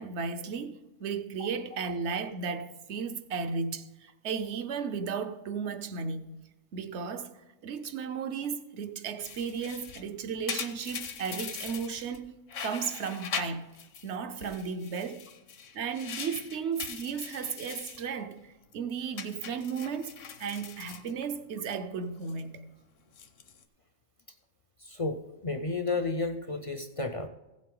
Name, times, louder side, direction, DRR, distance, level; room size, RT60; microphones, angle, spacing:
voice 1, 0.0-6.4 6.7-13.7 14.0-15.3 15.7-20.1 20.4-22.7, right 6 dB, 65° right, 1.0 m, -35 dB
sound 1, 9.2-12.2 12.5-14.1 14.4-18.1 18.4-18.7 19.2-21.7 22.0-22.4 23.0-23.6, left 6 dB, 70° left, 1.2 m, -41 dB
voice 2, 24.8-27.3, left 3 dB, 45° left, 0.4 m, -32 dB
15.5 x 7.6 x 3.8 m
omnidirectional pair, 1.3 m